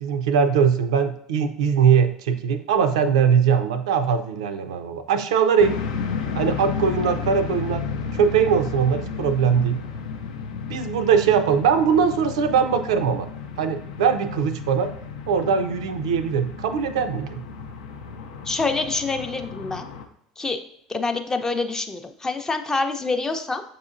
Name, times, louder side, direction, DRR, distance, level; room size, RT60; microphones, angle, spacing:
voice 1, 0.0-5.8 6.4-7.9 8.1-9.8 10.7-13.3 13.6-14.9 15.3-17.4, right 7 dB, 70° right, 8 dB, 0.3 m, -21 dB
sound 1, 5.6-20.0, left 5 dB, 75° left, 0.4 m, -33 dB
voice 2, 18.5-19.9 20.4-20.6 20.9-23.6, left 3 dB, 15° left, 6 dB, 0.5 m, -26 dB
6.4 x 2.8 x 2.5 m, 0.70 s
figure-of-eight pair, 70°, 3 cm